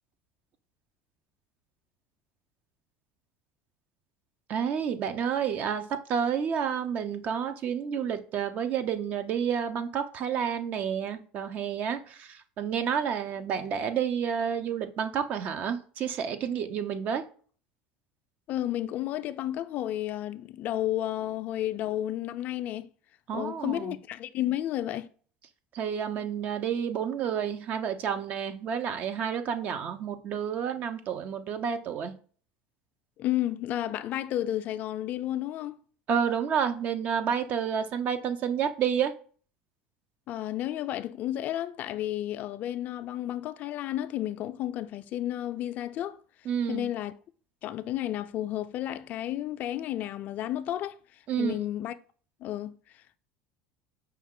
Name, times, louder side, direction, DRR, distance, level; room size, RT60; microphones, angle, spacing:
voice 1, 4.5-17.3 23.3-23.9 25.7-32.1 36.1-39.1 46.5-46.9 51.3-51.7, right 7 dB, 50° right, 0.6 m, -30 dB
voice 2, 18.5-22.9 23.3-25.1 33.2-35.8 40.3-46.2 46.7-47.1 47.6-51.0 51.4-51.9 52.4-53.2, left 13 dB, 50° left, 0.3 m, -32 dB
5.6 x 2.4 x 3.6 m
supercardioid pair, 95°, 4 cm